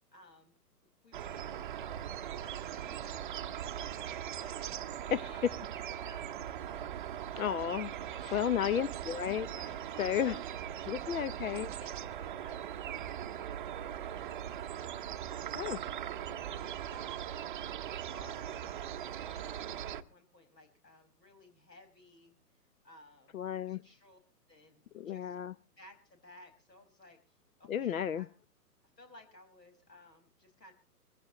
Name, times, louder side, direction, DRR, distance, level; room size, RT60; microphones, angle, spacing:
voice 1, 0.1-0.6 0.8-4.7 5.2-6.9 8.2-8.8 10.0-10.4 10.7-15.1 15.6-15.8 16.2-22.3 22.8-24.2 24.5-25.5 25.8-28.3 29.0-30.7, left 2 dB, 85° left, 7 dB, 5.6 m, -58 dB
sound 1, 1.1-20.0, right 10 dB, 30° right, 0.7 m, -40 dB
voice 2, 7.4-10.3 10.9-11.7 15.6-15.8 23.3-23.8 24.9-25.5 27.7-28.2, left 9 dB, 60° left, 19 dB, 0.7 m, -33 dB
23.0 x 15.5 x 3.0 m, 0.35 s
figure-of-eight pair, 130°, 48 cm